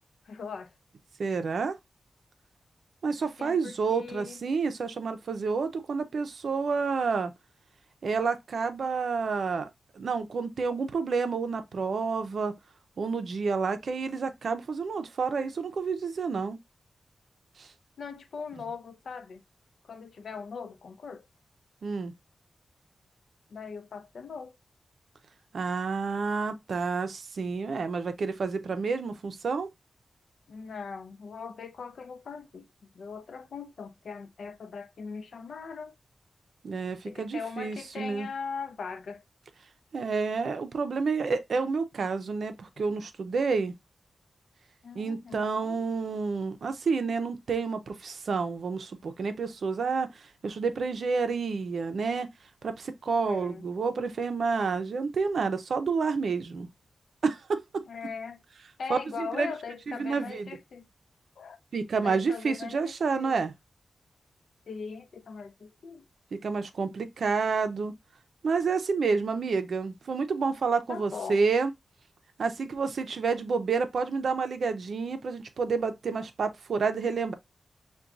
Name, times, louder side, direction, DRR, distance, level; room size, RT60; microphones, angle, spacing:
voice 1, 0.2-0.7 3.4-4.4 18.0-19.4 19.8-21.3 23.5-24.6 30.5-32.7 32.9-35.9 37.0-39.2 44.8-45.8 53.2-53.6 57.8-58.4 58.8-60.9 61.4-61.6 62.0-63.4 64.7-66.1 70.9-71.5, left 5 dB, 75° left, 0.5 m, -40 dB
voice 2, 1.2-1.8 3.0-7.3 8.0-12.6 13.0-16.6 17.6-17.7 21.8-22.1 25.5-29.7 36.6-38.3 39.9-43.7 44.9-52.3 52.6-56.7 57.2-57.8 58.9-59.5 59.9-60.5 61.7-63.5 66.3-67.9 68.4-71.7 72.4-77.3, right 4 dB, 65° right, 0.5 m, -29 dB
5.8 x 2.2 x 2.5 m
wide cardioid pair, 165°, 0 cm